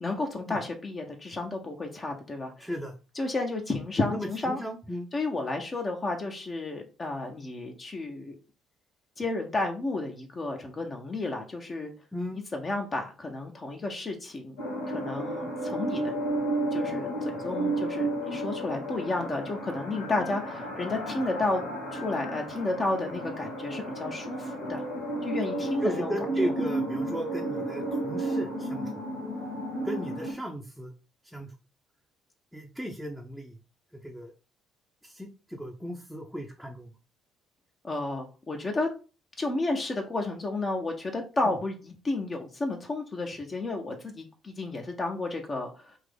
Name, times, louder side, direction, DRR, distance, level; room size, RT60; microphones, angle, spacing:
voice 1, 0.0-2.7 3.1-4.6 5.1-8.3 9.2-11.9 12.5-14.6 14.9-16.1 16.7-21.6 21.9-24.8 25.2-26.1 37.8-38.9 39.4-46.0, left 2 dB, 35° left, 2 dB, 0.8 m, -32 dB
voice 2, 2.6-2.9 4.1-5.1 12.1-12.4 25.8-29.0 29.8-30.9 31.2-31.5 32.5-33.6 33.9-34.3 35.0-36.9 41.4-41.6, equal, ahead, 1 dB, 0.7 m, -35 dB
sound 1, 14.6-30.3, right 1 dB, 85° left, 1.2 m, -32 dB
3.6 x 2.9 x 3.6 m, 0.34 s
figure-of-eight pair, 50°, 0 cm